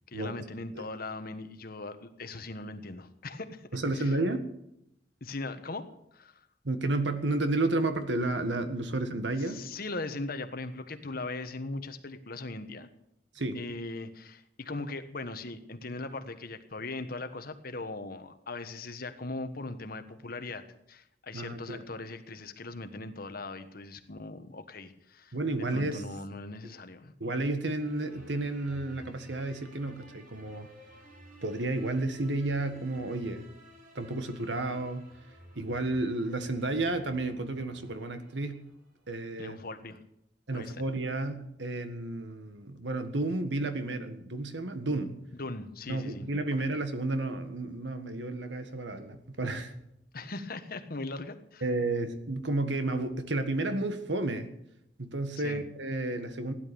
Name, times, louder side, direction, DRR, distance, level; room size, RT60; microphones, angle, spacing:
voice 1, 0.1-3.7 3.9-4.2 5.2-6.4 9.4-12.9 13.5-27.1 39.4-40.0 40.5-40.9 45.4-46.2 46.5-46.7 50.1-51.6 55.4-55.6, left 2 dB, 55° left, 9 dB, 1.4 m, -39 dB
voice 2, 3.7-4.4 6.6-9.6 13.3-13.6 21.3-21.8 25.3-26.0 27.2-30.7 31.4-33.5 33.9-35.1 35.5-38.6 39.1-39.6 40.5-45.2 45.9-49.7 51.6-54.5 55.0-56.5, right 2 dB, 90° right, 8 dB, 1.7 m, -31 dB
sound 1, 27.8-39.1, left 1 dB, 50° right, 7.3 m, -54 dB
16.0 x 11.0 x 7.0 m, 0.81 s
head